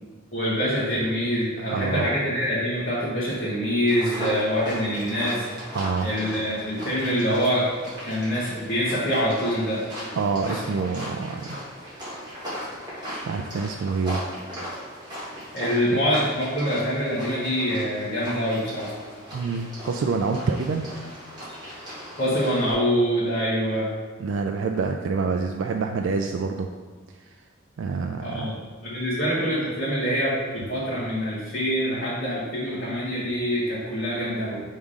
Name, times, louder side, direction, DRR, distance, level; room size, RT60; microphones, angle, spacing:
voice 1, 0.3-5.4 6.0-7.7 8.0-9.8 10.4-10.5 15.5-18.9 22.2-23.9 28.2-28.5 28.8-34.6, equal, 45° left, -10 dB, 1.3 m, -25 dB
voice 2, 1.6-2.1 5.7-6.1 10.2-11.6 13.2-14.2 19.3-20.9 24.2-26.7 27.8-28.5, right 4 dB, 75° right, 4 dB, 0.3 m, -27 dB
sound 1, 3.9-22.7, equal, 20° right, 1.9 m, -37 dB
5.6 x 3.5 x 4.9 m, 1.4 s
head